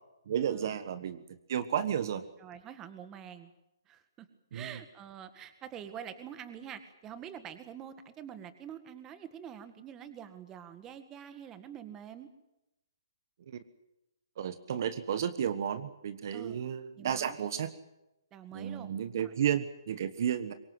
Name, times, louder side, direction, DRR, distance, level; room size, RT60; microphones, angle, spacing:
voice 1, 0.3-2.2 4.5-4.8 13.5-13.6 14.4-17.7 18.5-20.5, right 9 dB, 50° right, 12 dB, 1.4 m, -32 dB
voice 2, 2.4-3.5 3.9-4.3 4.5-12.3 16.3-16.6 17.0-17.4 18.3-18.9 19.2-19.3, right 9 dB, 20° right, 10 dB, 1.8 m, -46 dB
23.5 x 20.5 x 7.9 m, 0.92 s
hypercardioid pair, 150°, 2 cm